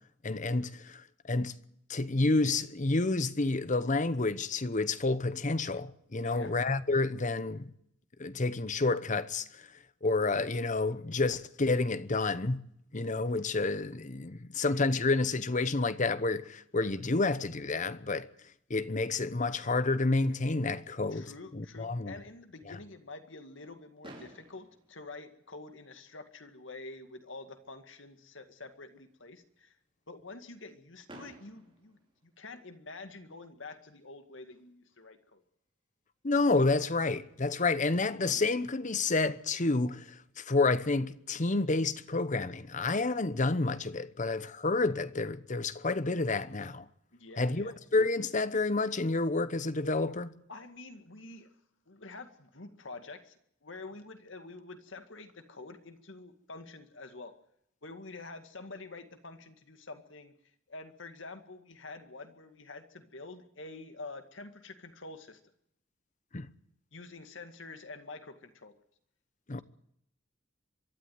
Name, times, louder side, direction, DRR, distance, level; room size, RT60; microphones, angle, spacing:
voice 1, 0.2-1.0 1.3-1.5 1.9-7.7 8.2-9.6 10.0-12.6 12.9-18.3 18.7-22.1 22.7-22.8 36.2-40.0 40.4-46.8 47.4-50.3 66.3-66.5 69.5-69.6, left 3 dB, 40° left, 0.9 m, -29 dB
voice 2, 6.2-6.6 21.1-29.8 30.1-35.4 47.1-47.8 50.5-51.5 51.9-57.4 57.8-60.3 60.7-65.4 66.9-68.7, left 3 dB, 70° left, 2.2 m, -47 dB
Fireworks, 24.0-26.1 26.9-27.0 27.2-27.4 27.7-27.8 31.1-32.9 34.6-34.7 37.7-37.8 38.2-40.5, right 1 dB, 25° right, 5.7 m, -55 dB
23.5 x 12.5 x 9.5 m
head